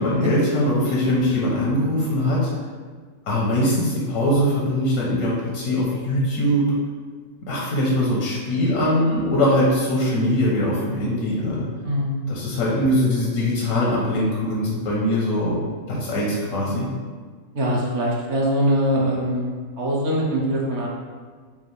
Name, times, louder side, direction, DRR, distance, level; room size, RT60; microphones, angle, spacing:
voice 1, 0.0-2.5 3.3-6.6 7.4-11.7 12.3-15.6 15.9-16.9, left 1 dB, 85° left, -5 dB, 1.3 m, -22 dB
voice 2, 11.8-12.3 17.5-19.5 19.8-20.9, equal, 55° right, -3 dB, 1.0 m, -22 dB
5.3 x 2.5 x 3.2 m, 1.5 s
omnidirectional pair, 1.5 m